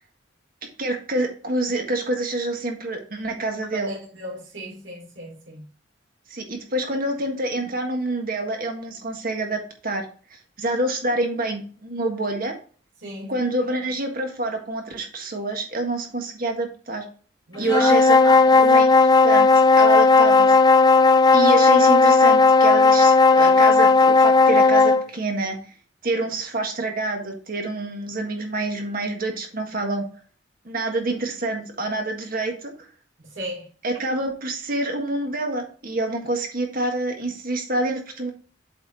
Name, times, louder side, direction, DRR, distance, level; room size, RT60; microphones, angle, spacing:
voice 1, 0.8-3.9 6.3-10.0 10.3-12.5 13.3-17.0 17.6-18.1 18.6-18.9 19.2-19.5 19.8-20.6 21.3-25.6 26.0-30.0 30.6-32.9 33.8-38.3, right 2 dB, 50° right, 1.5 m, -27 dB
voice 2, 3.6-5.6 13.0-13.4 17.5-18.6 33.2-33.7, right 1 dB, 75° right, 3.5 m, -34 dB
sound 1, 17.6-25.1, left 3 dB, 20° left, 0.4 m, -15 dB
7.9 x 4.3 x 4.1 m
head